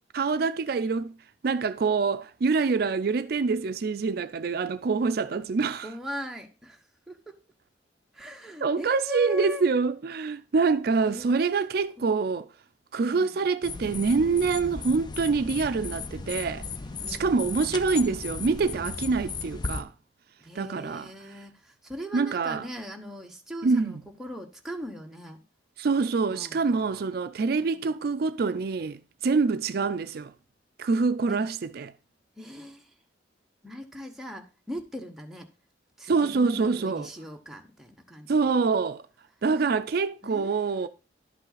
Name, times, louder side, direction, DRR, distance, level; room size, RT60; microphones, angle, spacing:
voice 1, 0.1-1.1 1.4-5.9 8.6-12.5 12.9-16.7 17.1-19.9 20.5-21.1 22.1-22.7 23.6-24.0 25.8-30.3 30.8-31.9 36.1-37.1 38.3-39.0 39.4-40.9, right 4 dB, 55° right, 0.4 m, -26 dB
voice 2, 5.8-6.8 7.1-7.4 8.1-9.6 11.0-11.7 12.0-12.1 13.1-13.4 17.0-17.7 20.4-25.4 26.2-27.0 27.5-27.9 31.3-31.4 32.4-32.9 33.6-35.5 36.0-38.5 40.2-40.9, left 1 dB, ahead, 0.9 m, -40 dB
sound 1, 13.6-19.8, left 4 dB, 25° left, 0.4 m, -36 dB
11.0 x 5.5 x 4.0 m
head